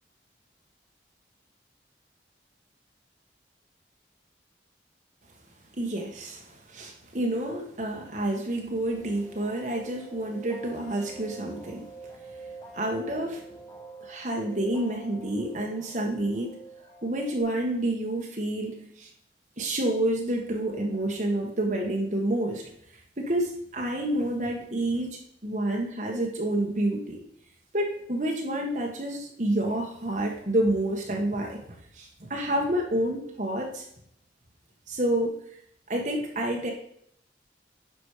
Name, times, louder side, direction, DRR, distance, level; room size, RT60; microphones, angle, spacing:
voice 1, 5.8-11.9 12.7-13.4 14.0-16.6 17.0-19.1 19.6-22.7 23.2-27.2 27.7-31.6 31.9-33.8 34.9-35.4 35.9-36.7, right 1 dB, 45° right, 1 dB, 1.4 m, -29 dB
sound 1, 8.9-17.4, right 2 dB, 20° left, 2.4 m, -46 dB
10.5 x 6.2 x 4.9 m, 0.71 s
head